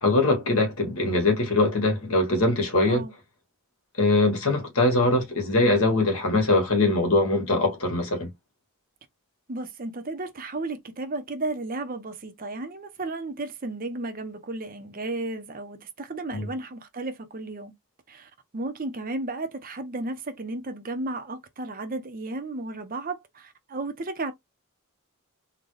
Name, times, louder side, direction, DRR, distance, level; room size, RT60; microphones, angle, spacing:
voice 1, 0.0-3.0 4.0-8.3 16.3-16.5, left 2 dB, 70° left, 1.8 m, -22 dB
voice 2, 2.8-3.1 9.5-17.7 18.1-24.3, right 2 dB, 40° right, 0.7 m, -34 dB
3.8 x 2.3 x 3.2 m
head